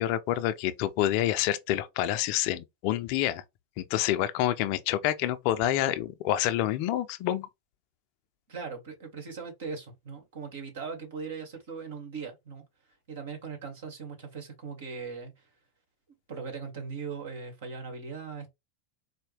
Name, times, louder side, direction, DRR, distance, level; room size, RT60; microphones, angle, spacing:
voice 1, 0.0-3.4 3.8-7.5, left 13 dB, 55° left, 0.5 m, -27 dB
voice 2, 8.5-12.6 13.1-15.5 16.3-18.5, right 5 dB, 70° right, 1.7 m, -39 dB
4.3 x 2.2 x 3.4 m
hypercardioid pair, 95°, 0 cm